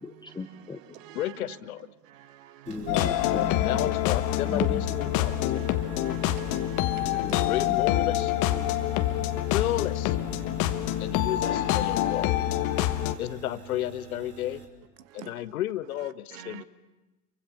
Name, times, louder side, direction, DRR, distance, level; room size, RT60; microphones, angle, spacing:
voice 1, 0.0-0.8 2.7-3.9 4.5-4.8 7.0-7.9, left 4 dB, 10° left, 1.1 m, -37 dB
voice 2, 1.1-1.9 3.6-5.6 7.4-8.3 9.5-10.2 11.0-12.4 13.2-14.6 15.1-16.6, left 13 dB, 65° left, 0.8 m, -32 dB
voice 3, 2.1-3.0 5.1-7.5 8.6-9.5 10.7-11.0 12.8-13.1 15.1-15.3 16.3-16.6, right 12 dB, 55° right, 1.5 m, -47 dB
sound 1, 2.7-14.7, right 5 dB, 85° right, 3.4 m, -46 dB
sound 2, 2.9-13.2, left 13 dB, 40° left, 1.3 m, -26 dB
28.5 x 24.0 x 5.7 m
figure-of-eight pair, 90°, 46 cm